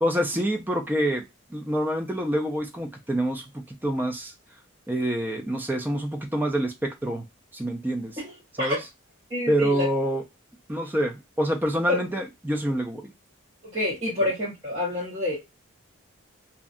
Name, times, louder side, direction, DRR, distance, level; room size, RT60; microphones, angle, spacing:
voice 1, 0.0-1.2 1.5-4.3 4.9-7.2 7.5-8.2 8.6-8.9 9.5-10.2 10.7-13.1, equal, 10° right, 3 dB, 0.3 m, -26 dB
voice 2, 8.2-8.8 9.3-9.9 11.9-12.0 13.7-15.4, left 2 dB, 30° right, -7 dB, 0.8 m, -28 dB
2.6 x 2.2 x 2.4 m, 0.22 s
head